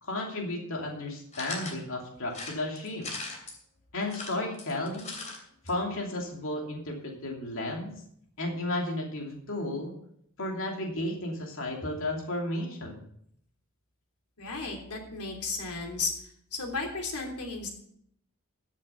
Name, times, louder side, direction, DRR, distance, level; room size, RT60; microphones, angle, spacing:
voice 1, 0.0-3.1 3.9-5.2 5.6-8.0 8.4-9.9 10.4-13.0, left 1 dB, 60° left, 0 dB, 2.8 m, -33 dB
sound 1, 1.3-1.8 2.3-3.6 4.0-5.4 5.7-5.8 6.0-6.1, left 3 dB, 35° left, 2.9 m, -39 dB
voice 2, 14.4-16.1 16.5-17.7, left 3 dB, 90° left, 2 dB, 3.2 m, -34 dB
14.5 x 7.3 x 5.7 m, 0.68 s
head